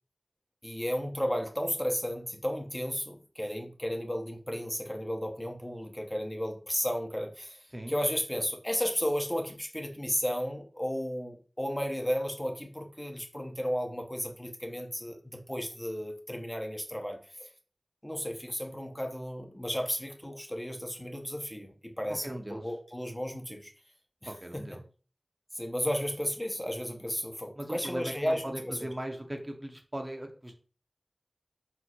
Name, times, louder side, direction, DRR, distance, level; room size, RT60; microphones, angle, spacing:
voice 1, 0.6-17.5 18.0-23.7 24.2-24.3 25.5-28.9, equal, 15° left, 2 dB, 0.8 m, -33 dB
voice 2, 22.1-22.7 24.2-24.8 27.6-30.6, right 1 dB, 25° right, 3 dB, 0.8 m, -39 dB
4.5 x 2.1 x 4.3 m, 0.38 s
wide cardioid pair, 40°, 0 cm